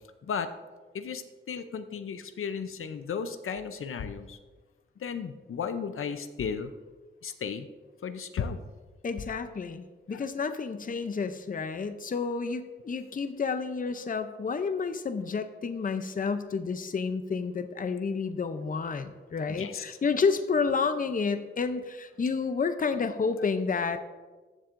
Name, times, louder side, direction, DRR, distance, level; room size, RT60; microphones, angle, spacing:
voice 1, 0.9-4.4 5.0-6.7 7.2-7.7 8.0-8.6 9.3-9.4 10.1-10.2 19.6-19.8, left 6 dB, 85° left, 9 dB, 0.6 m, -34 dB
voice 2, 9.0-24.0, left 5 dB, 40° left, 10 dB, 0.5 m, -30 dB
14.5 x 7.3 x 2.5 m, 1.3 s
wide cardioid pair, 125°, 21 cm